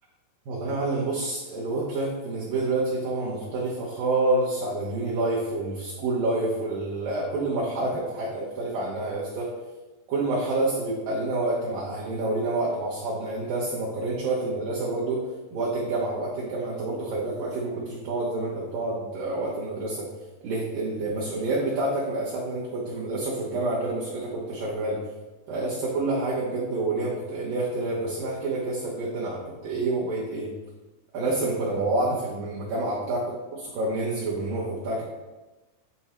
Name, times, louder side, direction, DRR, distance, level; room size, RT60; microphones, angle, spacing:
voice 1, 0.5-9.5 10.1-15.2 15.5-20.1 20.4-25.0 25.5-30.5 31.1-33.2 33.5-35.0, right 2 dB, 70° right, -6 dB, 2.2 m, -28 dB
9.1 x 3.5 x 4.3 m, 1.2 s
omnidirectional pair, 5.2 m